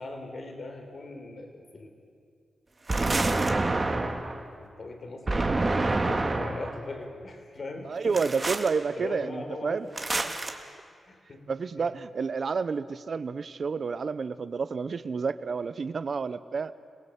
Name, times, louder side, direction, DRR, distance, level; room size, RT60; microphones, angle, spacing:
voice 1, 0.0-1.9 4.6-5.6 5.9-8.7 8.9-10.3 11.1-11.9, left 2 dB, 50° left, 4 dB, 4.0 m, -40 dB
sound 1, 2.9-4.4 5.3-6.7 8.1-8.7 10.0-10.5, right 2 dB, 30° right, 2.0 m, -27 dB
voice 2, 7.8-9.9 11.5-16.7, right 5 dB, 55° right, 15 dB, 0.8 m, -30 dB
26.5 x 18.0 x 8.3 m, 2.2 s
cardioid pair, 85°, 0 cm